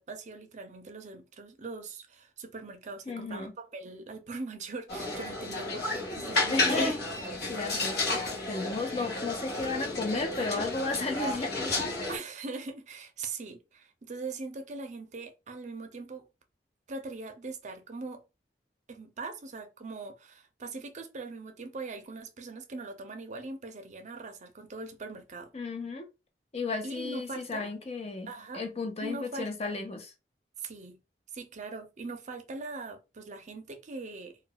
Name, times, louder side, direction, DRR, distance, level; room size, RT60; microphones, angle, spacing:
voice 1, 0.0-7.0 7.4-7.8 12.1-16.2 16.9-18.2 18.9-25.5 26.8-27.7 28.3-28.6 29.0-29.7 30.6-31.0 31.3-34.4, right 3 dB, 45° right, 0.5 m, -41 dB
voice 2, 3.1-3.5 6.3-6.9 7.5-8.1 8.5-11.8 25.5-26.1 26.5-30.1, left 3 dB, 35° left, 0.6 m, -34 dB
sound 1, 4.9-12.2, left 2 dB, 65° left, 1.0 m, -31 dB
2.3 x 2.2 x 3.8 m
head